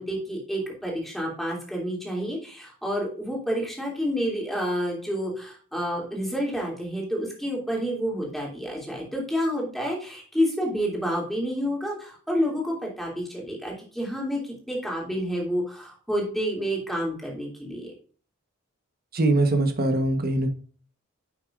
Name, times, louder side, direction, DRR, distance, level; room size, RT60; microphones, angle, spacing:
voice 1, 0.0-17.9, equal, ahead, -2 dB, 2.9 m, -29 dB
voice 2, 19.1-20.5, right 2 dB, 45° right, 6 dB, 1.2 m, -22 dB
10.0 x 6.5 x 2.5 m, 0.43 s
head